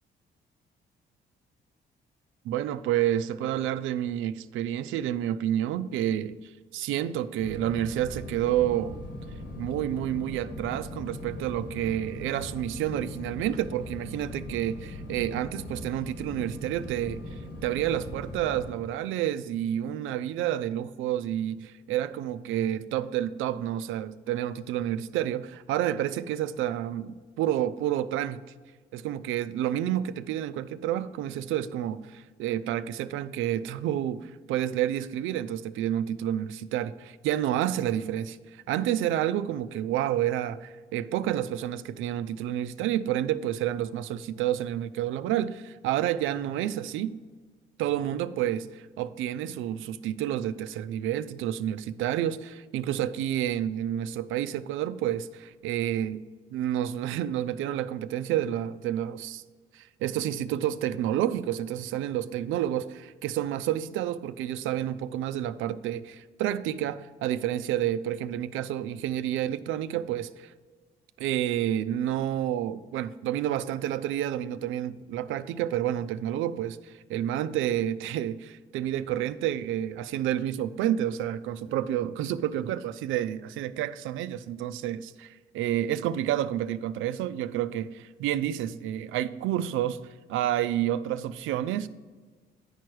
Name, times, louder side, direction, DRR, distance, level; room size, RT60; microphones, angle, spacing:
voice 1, 2.4-9.0 9.6-17.2 17.6-28.4 28.9-38.4 38.7-47.2 47.8-56.2 56.5-59.4 59.7-70.5 71.2-90.0 90.3-91.9, right 11 dB, 90° right, 0.4 m, -29 dB
sound 1, 7.4-18.7, left 1 dB, 60° left, 1.8 m, -40 dB
9.9 x 4.6 x 4.7 m
cardioid pair, 90°, 20 cm